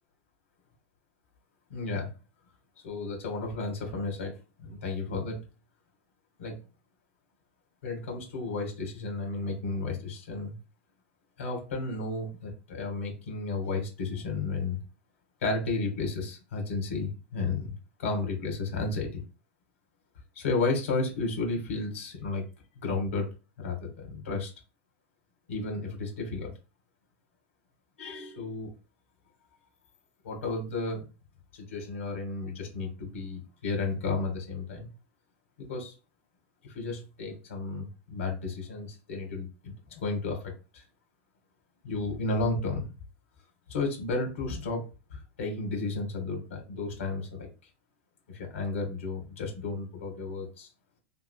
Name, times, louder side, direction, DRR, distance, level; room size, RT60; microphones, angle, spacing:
voice 1, 1.7-2.1 2.8-5.4 6.4-6.6 7.8-10.5 11.4-14.8 15.4-19.2 20.3-22.4 22.8-23.3 23.6-24.5 25.5-26.5 28.0-28.7 30.2-31.1 31.5-34.9 35.6-35.9 36.6-40.8 41.8-42.9 43.7-47.5 48.3-50.7, left 3 dB, 85° left, 2 dB, 1.7 m, -33 dB
3.6 x 2.9 x 2.2 m, 0.31 s
hypercardioid pair, 100°, 7 cm